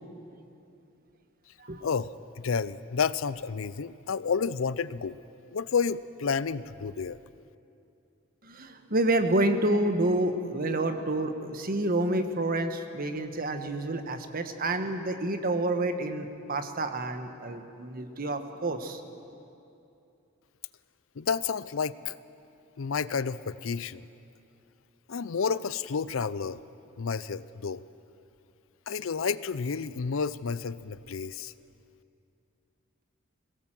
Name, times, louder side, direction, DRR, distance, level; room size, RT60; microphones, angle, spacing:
voice 1, 1.8-5.2 5.5-7.2 21.2-22.1 22.8-24.1 25.1-26.6 27.0-27.8 28.9-31.5, left 5 dB, 80° left, 17 dB, 0.5 m, -30 dB
voice 2, 8.4-19.0, right 2 dB, 45° right, 8 dB, 1.3 m, -28 dB
22.0 x 17.0 x 7.6 m, 2.7 s
head